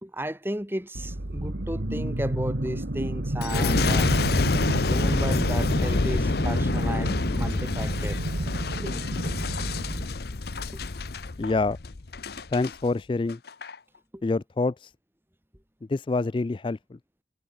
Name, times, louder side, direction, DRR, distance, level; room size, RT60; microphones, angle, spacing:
voice 1, 0.0-4.1 4.9-8.2 8.8-9.0 10.7-10.8 14.1-14.2, right 1 dB, 10° right, 2.7 m, -34 dB
sound 1, 0.9-10.1, right 1 dB, 65° right, 1.8 m, -30 dB
Boom, 3.4-12.7 13.3-13.7, left 3 dB, 55° left, 0.8 m, -27 dB
voice 2, 11.4-11.8 12.5-13.4 14.2-14.9 15.9-17.0, left 3 dB, 25° left, 0.3 m, -26 dB
head